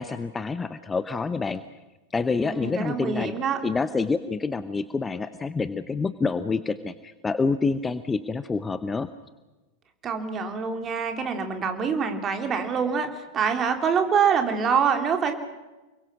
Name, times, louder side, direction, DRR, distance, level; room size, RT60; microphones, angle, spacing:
voice 1, 0.0-1.6 2.1-3.3 3.6-9.1, left 4 dB, 15° left, 13 dB, 0.9 m, -27 dB
voice 2, 2.4-3.6 10.0-15.3, right 6 dB, 25° right, 5 dB, 3.4 m, -25 dB
29.5 x 22.5 x 6.2 m, 1.1 s
figure-of-eight pair, 90°, 0 cm